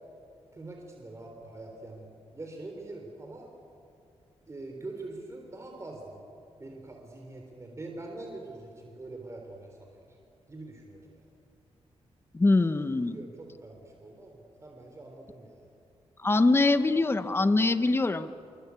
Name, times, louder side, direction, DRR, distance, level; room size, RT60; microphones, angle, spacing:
voice 1, 0.5-3.5 4.5-6.2 6.6-10.1 10.5-11.3 13.0-15.8, right 2 dB, 25° right, 1 dB, 3.7 m, -44 dB
voice 2, 12.3-13.2 16.2-18.3, left 2 dB, 20° left, 11 dB, 1.0 m, -23 dB
25.5 x 24.0 x 8.4 m, 2.5 s
cardioid pair, 100°, 11 cm